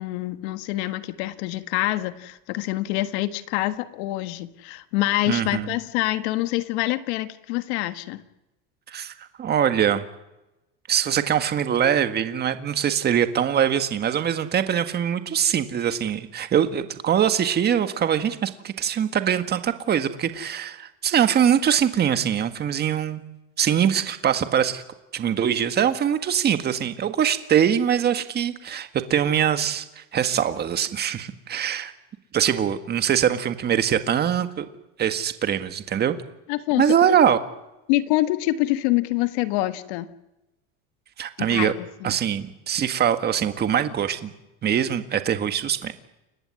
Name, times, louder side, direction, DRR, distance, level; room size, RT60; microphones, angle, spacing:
voice 1, 0.0-8.2 36.5-37.1 37.9-40.1 41.5-42.1, left 17 dB, 80° left, 11 dB, 1.6 m, -26 dB
voice 2, 5.3-5.7 8.9-9.1 9.4-10.0 10.9-23.2 23.6-24.8 25.1-31.9 32.3-34.6 35.0-36.2 36.8-37.4 41.2-41.7 42.0-44.3 44.6-45.9, right 9 dB, 30° right, 9 dB, 1.8 m, -23 dB
29.5 x 15.5 x 9.7 m, 0.95 s
cardioid pair, 140°, 33 cm